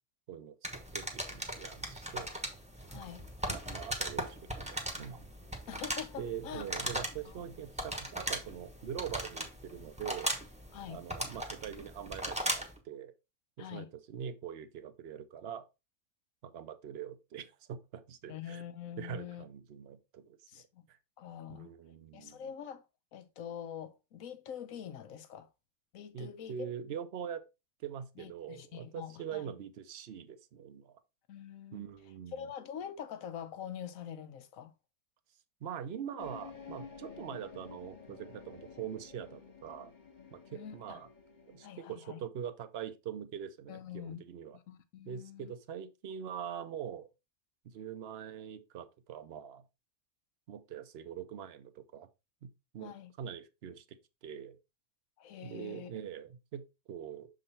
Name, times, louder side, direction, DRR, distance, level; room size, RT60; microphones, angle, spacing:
sound 1, 0.6-12.8, right 1 dB, 5° right, 0.9 m, -39 dB
voice 1, 0.9-2.3 3.5-5.2 6.2-10.4 10.9-13.1 13.6-15.6 16.4-18.7 19.0-20.6 20.9-21.0 21.5-22.4 26.1-27.4 27.8-31.0 31.7-32.5 35.6-39.9 40.3-41.1 41.5-44.6 45.1-47.1 47.6-49.6 50.5-52.1 52.4-52.9 53.2-54.6 55.4-57.3, right 8 dB, 55° right, 0.8 m, -43 dB
voice 2, 2.9-3.2 5.7-6.6 7.2-7.5 10.7-11.0 13.6-13.9 18.3-19.4 20.5-20.8 21.2-21.7 22.1-22.8 23.1-25.5 25.9-26.7 28.2-29.5 31.3-31.8 32.3-34.7 40.5-41.0 41.6-42.2 43.7-44.2 44.5-45.5 52.8-53.1 55.2-55.9, left 9 dB, 70° left, 1.2 m, -45 dB
sound 2, 36.2-41.7, left 6 dB, 35° left, 1.1 m, -51 dB
6.5 x 3.9 x 4.1 m
omnidirectional pair, 1.5 m